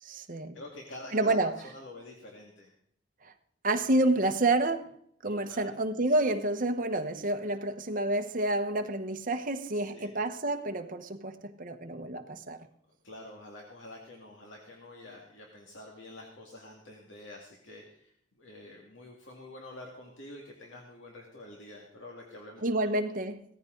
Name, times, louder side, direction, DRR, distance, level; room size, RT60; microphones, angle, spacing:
voice 1, 0.0-0.5 1.1-1.6 3.2-3.3 3.6-4.9 5.2-12.7 22.6-23.4, right 2 dB, 45° right, 1.1 m, -29 dB
voice 2, 0.5-1.4 1.6-2.7 5.3-5.7 9.9-10.1 13.0-18.1 18.4-22.9, left 2 dB, 75° left, 2.2 m, -47 dB
17.0 x 14.0 x 3.9 m
head